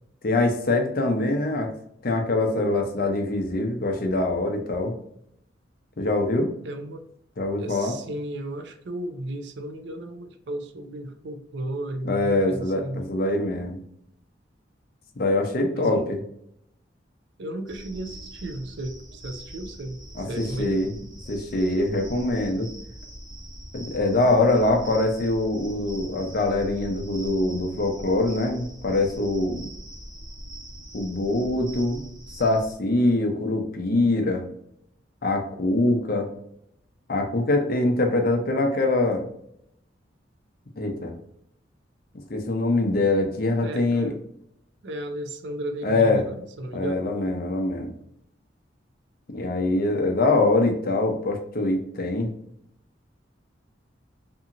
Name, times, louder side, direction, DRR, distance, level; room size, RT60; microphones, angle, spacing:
voice 1, 0.2-1.7 2.0-5.0 6.0-6.5 7.4-7.9 12.1-13.8 15.2-16.0 20.2-20.9 21.3-22.7 23.7-29.6 30.9-32.0 32.4-34.4 35.2-36.3 37.1-39.2 40.8-41.1 42.3-44.1 45.8-46.2 46.7-47.9 49.3-52.3, left 2 dB, 50° left, 3 dB, 0.6 m, -23 dB
voice 2, 6.6-7.1 7.6-13.1 15.7-16.1 17.4-20.9 43.6-44.3 44.8-47.1, right 1 dB, 65° right, 7 dB, 0.4 m, -34 dB
sound 1, 17.7-32.7, right 1 dB, 20° right, 0.6 m, -42 dB
2.8 x 2.7 x 2.5 m, 0.73 s
head